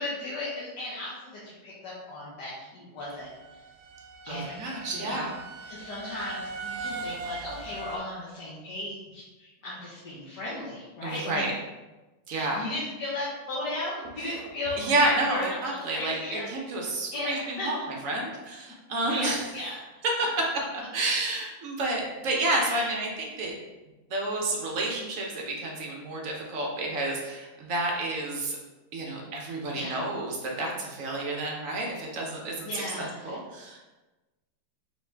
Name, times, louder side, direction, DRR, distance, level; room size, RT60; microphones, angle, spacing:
voice 1, 0.0-3.3 4.2-4.7 4.9-5.3 5.7-11.4 12.3-16.5 17.1-17.7 19.1-19.8 22.6-22.9 29.7-30.0 32.6-33.4, left 2 dB, 65° left, -7 dB, 1.4 m, -36 dB
sound 1, 3.0-8.0, right 3 dB, 85° right, 1.3 m, -39 dB
voice 2, 4.3-5.3 11.0-11.5 12.3-12.6 14.8-17.8 18.0-19.4 20.0-20.1 20.9-23.5 24.1-28.6 28.9-33.8, right 2 dB, 60° right, -1 dB, 0.8 m, -30 dB
3.9 x 3.1 x 3.3 m, 1.1 s
omnidirectional pair, 2.1 m